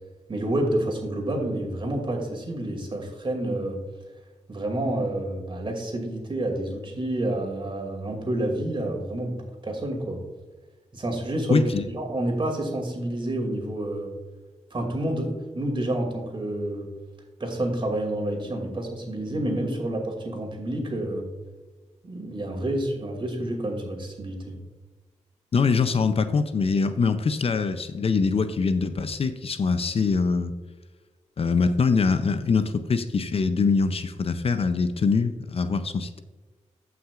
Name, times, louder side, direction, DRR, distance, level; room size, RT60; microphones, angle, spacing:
voice 1, 0.3-3.8 4.5-10.2 10.9-14.1 14.7-16.9 17.4-21.3 22.0-24.6, right 1 dB, 40° right, 1 dB, 2.5 m, -29 dB
voice 2, 11.5-11.8 25.5-30.5 31.4-36.2, left 4 dB, 50° left, 10 dB, 0.5 m, -23 dB
15.0 x 5.9 x 2.5 m, 1.3 s
cardioid pair, 70°, 13 cm